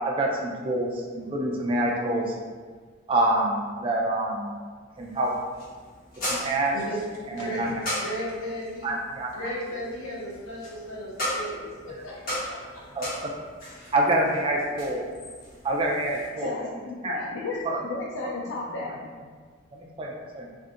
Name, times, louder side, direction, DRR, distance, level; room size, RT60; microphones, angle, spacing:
voice 1, 0.0-2.3 3.1-4.5 5.0-5.3 6.3-6.8 7.3-7.7 8.8-9.3 12.9-13.3 13.9-15.1 15.6-16.5 17.0-17.1 17.6-17.8 18.2-18.5 19.7-20.5, right 1 dB, 25° right, -1 dB, 0.4 m, -26 dB
sound 1, 4.9-16.3, equal, 45° left, 1.3 m, -37 dB
voice 2, 7.3-7.7 8.0-8.9 9.3-12.8, equal, 85° left, -5 dB, 0.9 m, -35 dB
voice 3, 16.3-18.9, left 3 dB, 65° left, -3 dB, 0.4 m, -33 dB
2.7 x 2.5 x 3.6 m, 1.5 s
head